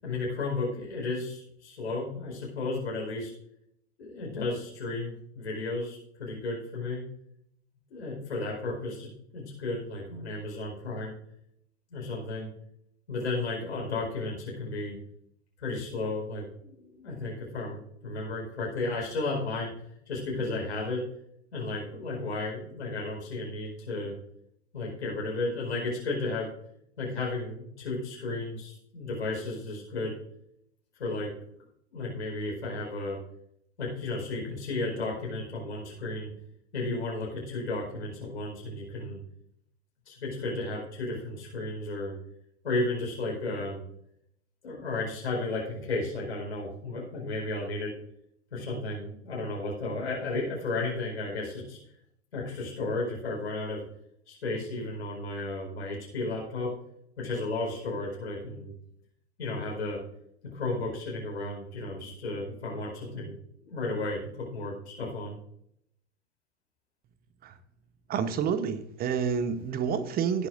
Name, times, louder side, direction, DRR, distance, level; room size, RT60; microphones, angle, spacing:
voice 1, 0.0-3.3 4.0-7.0 7.9-11.1 11.9-12.5 13.1-15.0 15.6-19.7 20.1-21.0 21.5-24.1 24.7-26.5 27.0-30.2 31.0-31.3 31.9-33.2 33.8-36.3 36.7-39.2 40.1-42.1 42.6-43.8 44.6-47.9 48.5-51.8 52.3-53.8 54.3-56.7 57.2-58.7 59.4-60.0 60.5-63.3 63.6-65.4, left 2 dB, 70° left, -3 dB, 4.8 m, -33 dB
voice 2, 68.1-70.5, right 7 dB, 25° right, 12 dB, 1.0 m, -29 dB
18.0 x 9.0 x 2.6 m, 0.73 s
figure-of-eight pair, 90°, 34 cm